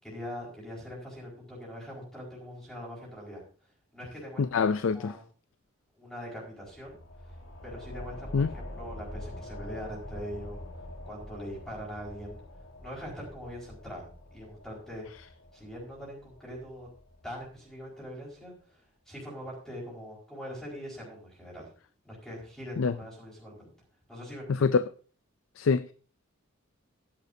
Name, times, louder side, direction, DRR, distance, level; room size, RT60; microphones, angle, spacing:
voice 1, 0.0-3.4 3.9-5.2 6.0-7.0 7.6-10.6 11.1-12.4 12.8-15.1 15.5-16.9 17.2-18.8 19.1-21.7 22.0-23.7 24.1-24.8, equal, ahead, 4.7 m, -42 dB
voice 2, 4.4-5.2 8.3-8.5 22.8-22.9 24.5-24.8 25.6-25.9, left 5 dB, 65° left, 0.4 m, -25 dB
sound 1, 6.7-17.8, left 1 dB, 85° left, 2.0 m, -45 dB
15.0 x 10.5 x 2.7 m
head